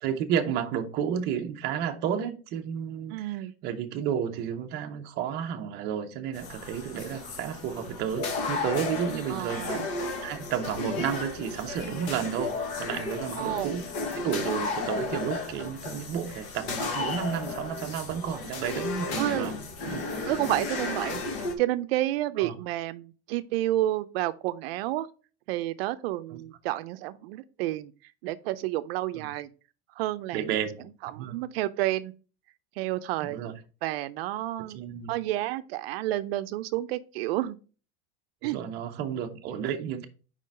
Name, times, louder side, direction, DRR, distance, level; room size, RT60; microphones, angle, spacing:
voice 1, 0.0-13.9 14.1-19.5 19.9-20.0 22.4-22.5 26.3-26.4 29.1-29.3 30.3-30.9 31.1-31.4 33.2-33.5 34.6-35.1 38.4-40.1, right 8 dB, 35° right, 0.7 m, -32 dB
voice 2, 3.1-3.5 9.3-9.9 13.4-13.8 14.9-15.1 19.2-19.5 20.3-21.2 21.6-25.1 25.5-27.9 28.2-29.5 30.0-30.5 31.0-32.1 32.8-33.4 33.8-34.8 35.1-37.6 38.4-38.6, right 15 dB, 85° right, 0.5 m, -30 dB
sound 1, 6.3-21.5, left 3 dB, 45° left, 1.2 m, -34 dB
5.0 x 3.8 x 5.3 m
supercardioid pair, 170°, 30 cm